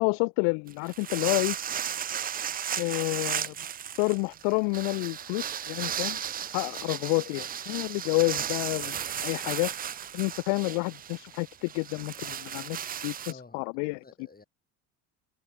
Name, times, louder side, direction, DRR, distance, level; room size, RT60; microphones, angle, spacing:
voice 1, 0.0-1.6 2.8-3.5 4.0-6.2 6.5-9.7 10.1-14.0, left 39 dB, 75° left, 0.5 m, -29 dB
sound 1, 0.7-13.3, right 9 dB, 25° right, 0.3 m, -35 dB
sound 2, 2.0-7.2, right 26 dB, 85° right, 4.5 m, -66 dB
voice 2, 13.3-14.4, left 3 dB, 20° left, 5.3 m, -52 dB
hypercardioid pair, 70°, 44 cm